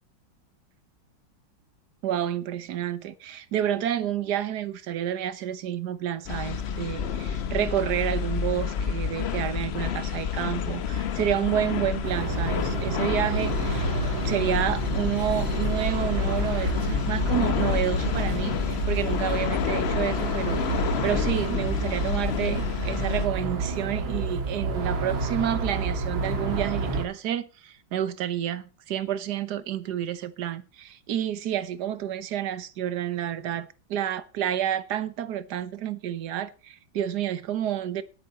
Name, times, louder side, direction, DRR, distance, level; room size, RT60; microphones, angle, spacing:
voice 1, 2.0-13.8 14.1-38.0, right 10 dB, 65° right, 1.3 m, -29 dB
sound 1, 6.3-23.3, left 7 dB, 85° left, 0.5 m, -29 dB
sound 2, 12.0-27.0, right 3 dB, 85° right, 2.9 m, -30 dB
17.5 x 8.4 x 4.2 m
omnidirectional pair, 2.1 m